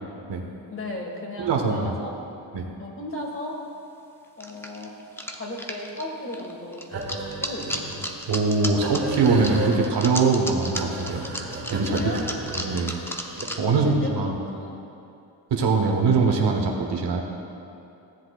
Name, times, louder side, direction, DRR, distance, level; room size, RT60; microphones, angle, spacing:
voice 1, 0.7-2.2 2.8-3.6 4.4-4.9 5.3-6.8 7.4-8.0 11.9-12.3 13.6-14.9, left 1 dB, 25° left, -1 dB, 1.8 m, -35 dB
voice 2, 1.4-1.9 2.5-2.7 8.3-11.2 11.7-12.0 12.6-13.0 13.6-14.4 15.5-17.2, right 4 dB, 60° right, 1 dB, 1.3 m, -22 dB
sound 1, 3.3-3.4 4.4-13.6, equal, 5° left, 0.7 m, -34 dB
sound 2, 6.9-13.5, right 1 dB, 30° right, 2.2 m, -34 dB
16.0 x 7.6 x 2.4 m, 2.7 s
cardioid pair, 70°, 46 cm